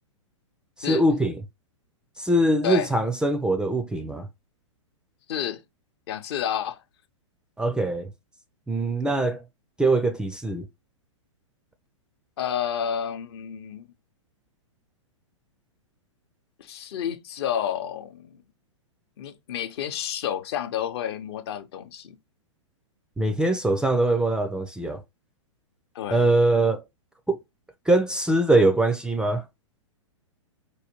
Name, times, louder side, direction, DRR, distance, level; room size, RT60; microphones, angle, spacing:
voice 1, 0.8-1.4 2.2-4.3 7.6-8.1 8.7-9.4 9.8-10.6 23.2-25.0 26.1-26.8 27.3-27.4 27.9-29.4, right 2 dB, 5° right, 0.4 m, -22 dB
voice 2, 5.3-5.6 6.1-6.8 12.4-13.8 16.6-18.4 19.2-22.2 25.9-26.3, left 9 dB, 55° left, 0.8 m, -30 dB
4.8 x 2.3 x 2.9 m
figure-of-eight pair, 110°, 16 cm